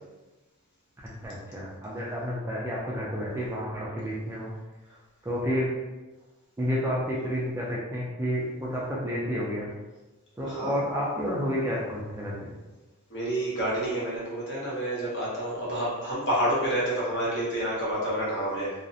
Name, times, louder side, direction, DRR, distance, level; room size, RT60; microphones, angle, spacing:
voice 1, 1.2-4.5 5.2-5.7 6.6-9.7 10.4-12.5, equal, 10° right, -5 dB, 0.3 m, -30 dB
voice 2, 10.4-10.8 13.1-18.7, right 1 dB, 55° left, -6 dB, 0.9 m, -29 dB
2.4 x 2.0 x 2.6 m, 1.1 s
head